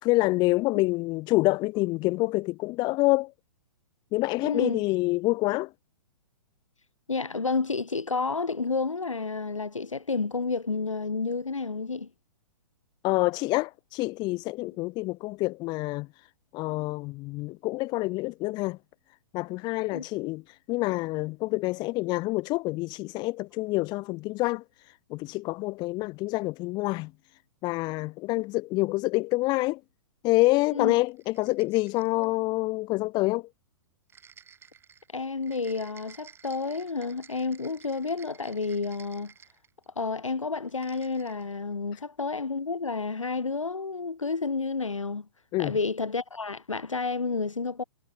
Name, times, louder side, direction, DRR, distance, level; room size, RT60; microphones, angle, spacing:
voice 1, 0.0-3.3 4.1-5.7 13.0-18.8 19.3-29.8 30.2-33.5 45.5-45.8, left 21 dB, 25° left, 1.1 m, -27 dB
voice 2, 4.4-4.8 7.1-12.1 19.9-20.0 30.7-30.9 35.1-39.3 40.0-45.3 45.6-47.8, left 4 dB, 75° left, 2.7 m, -30 dB
sound 1, 31.1-32.3 34.1-40.0 40.6-41.5, right 7 dB, 15° right, 6.6 m, -54 dB
figure-of-eight pair, 115°, 16 cm